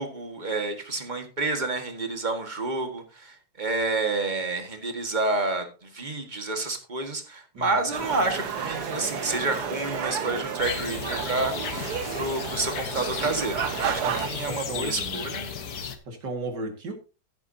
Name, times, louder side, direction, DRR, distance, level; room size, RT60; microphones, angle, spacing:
voice 1, 0.0-15.5, right 3 dB, 25° right, 5 dB, 1.8 m, -29 dB
sound 1, 7.9-14.6, left 1 dB, 25° left, 3.0 m, -41 dB
sound 2, 7.9-14.3, right 8 dB, 70° right, 1.4 m, -32 dB
sound 3, 10.6-16.0, left 6 dB, 65° left, 1.7 m, -35 dB
voice 2, 14.0-15.2 16.1-16.9, right 2 dB, 85° right, 4 dB, 2.8 m, -35 dB
15.0 x 8.3 x 2.8 m, 0.31 s
omnidirectional pair, 1.8 m